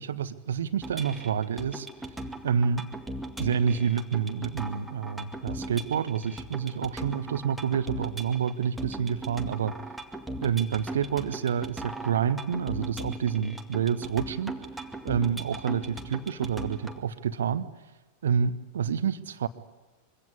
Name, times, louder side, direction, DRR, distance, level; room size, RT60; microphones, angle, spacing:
voice 1, 0.0-1.9 2.4-2.9 3.4-9.8 10.4-14.5 15.0-17.6 18.2-19.5, right 7 dB, 65° right, 13 dB, 1.3 m, -28 dB
sound 1, 0.8-17.0, right 1 dB, ahead, 2.2 m, -39 dB
24.0 x 17.0 x 9.5 m, 1.1 s
figure-of-eight pair, 90°, 0 cm